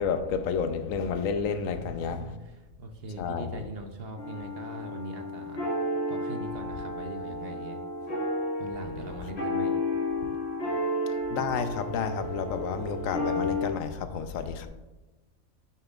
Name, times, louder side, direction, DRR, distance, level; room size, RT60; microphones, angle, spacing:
voice 1, 0.0-2.4 3.2-3.6 11.3-14.7, left 6 dB, 75° left, 1.0 m, -30 dB
voice 2, 1.5-5.6 6.1-7.8 8.6-9.7, right 2 dB, 55° right, 0.8 m, -41 dB
sound 1, 4.2-13.7, left 1 dB, 50° left, 2.2 m, -32 dB
8.9 x 7.0 x 2.4 m
omnidirectional pair, 1.4 m